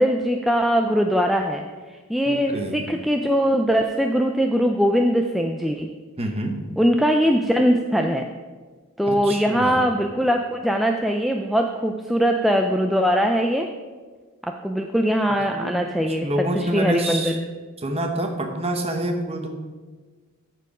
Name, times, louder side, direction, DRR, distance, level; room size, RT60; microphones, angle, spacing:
voice 1, 0.0-1.6 2.1-5.9 6.8-8.2 9.0-13.7 14.4-16.3 16.5-17.3, equal, ahead, 3 dB, 0.3 m, -21 dB
voice 2, 2.3-2.8 6.2-6.6 9.1-9.8 15.5-15.8 16.1-17.4 17.8-19.5, right 1 dB, 25° right, 4 dB, 1.0 m, -27 dB
13.5 x 4.6 x 4.9 m, 1.4 s
head